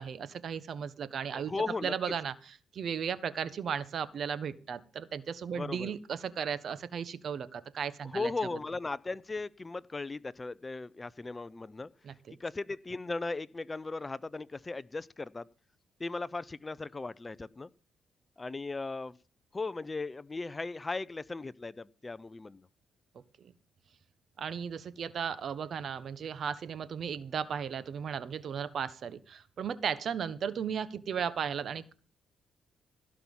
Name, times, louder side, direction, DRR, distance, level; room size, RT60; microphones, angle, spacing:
voice 1, 0.0-1.5 1.8-2.3 2.7-8.3 12.0-12.4 23.4-23.5 24.4-31.9, right 7 dB, 55° right, 1.2 m, -35 dB
voice 2, 1.3-1.9 5.5-5.9 8.0-11.9 12.4-15.5 16.0-17.7 18.4-19.2 19.5-22.7, left 3 dB, 25° left, 0.5 m, -37 dB
16.5 x 5.8 x 7.2 m
cardioid pair, 90°, 0 cm